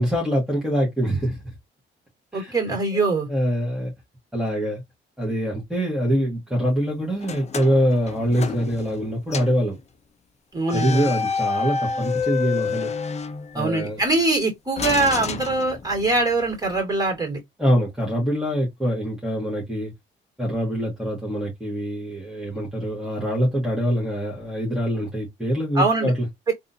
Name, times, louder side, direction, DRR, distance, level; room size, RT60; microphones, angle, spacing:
voice 1, 0.0-1.4 2.3-3.0 3.3-3.9 4.3-4.8 5.2-9.8 10.7-12.9 13.5-14.0 17.6-19.9 20.4-26.3, equal, ahead, 1.5 m, -24 dB
voice 2, 2.3-3.3 10.5-11.1 13.5-17.4 25.7-26.1, right 3 dB, 20° right, 2.4 m, -23 dB
sound 1, 7.2-9.0 9.3-9.6 10.7-13.9 14.8-16.2, left 5 dB, 35° left, 0.6 m, -29 dB
3.5 x 2.6 x 2.7 m
cardioid pair, 90°, 20 cm